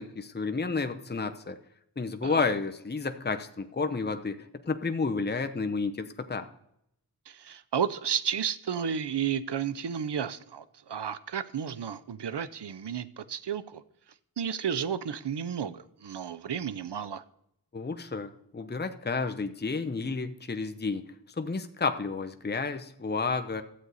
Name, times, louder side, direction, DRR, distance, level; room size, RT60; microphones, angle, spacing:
voice 1, 0.0-1.6 2.0-6.5 17.7-23.6, left 4 dB, 25° left, 0.7 m, -31 dB
voice 2, 7.3-13.8 14.4-17.2, right 8 dB, 80° right, 0.6 m, -32 dB
13.0 x 7.8 x 4.1 m
wide cardioid pair, 50°, 41 cm